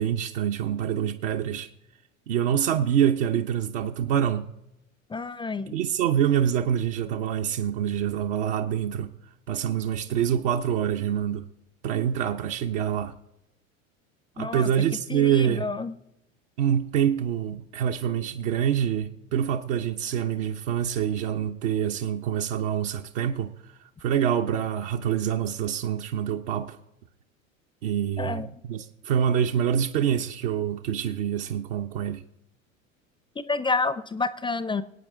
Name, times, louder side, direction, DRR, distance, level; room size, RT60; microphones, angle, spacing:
voice 1, 0.0-1.7 2.3-4.5 5.7-9.1 9.5-11.4 11.8-13.1 14.4-15.7 16.6-23.5 24.0-26.8 27.8-32.2, right 9 dB, 65° right, 0.9 m, -26 dB
voice 2, 5.1-5.7 14.4-14.7 15.1-16.0 28.2-28.5 33.4-34.8, left 4 dB, 10° left, 0.5 m, -29 dB
24.0 x 8.7 x 3.7 m
hypercardioid pair, 80°, 40 cm